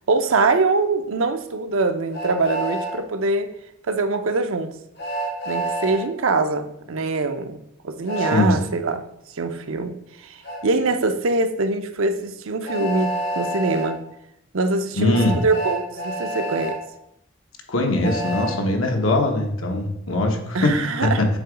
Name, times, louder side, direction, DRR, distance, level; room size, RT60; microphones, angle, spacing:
voice 1, 0.1-3.5 3.9-4.7 5.5-9.0 9.4-9.9 10.2-14.0 14.5-16.8 20.5-21.2, right 3 dB, 85° right, 8 dB, 0.6 m, -23 dB
Train, 2.1-2.9 5.0-6.0 8.1-8.4 10.4-10.6 12.6-13.9 15.1-16.7 18.0-18.5, right 1 dB, 50° left, 1.7 m, -28 dB
voice 2, 8.2-8.5 15.0-15.4 17.7-20.8 21.0-21.3, left 2 dB, 80° left, 3 dB, 1.1 m, -21 dB
7.3 x 3.0 x 5.0 m, 0.79 s
head